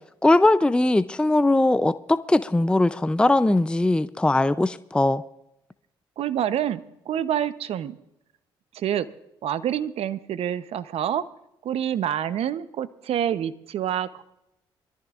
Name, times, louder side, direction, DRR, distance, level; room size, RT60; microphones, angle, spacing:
voice 1, 0.2-5.2, left 2 dB, 10° left, 0.5 m, -20 dB
voice 2, 6.2-8.0 8.7-9.1 9.4-11.2 11.6-14.2, right 10 dB, 65° right, 0.8 m, -27 dB
23.5 x 14.0 x 2.5 m
supercardioid pair, 60°, 11 cm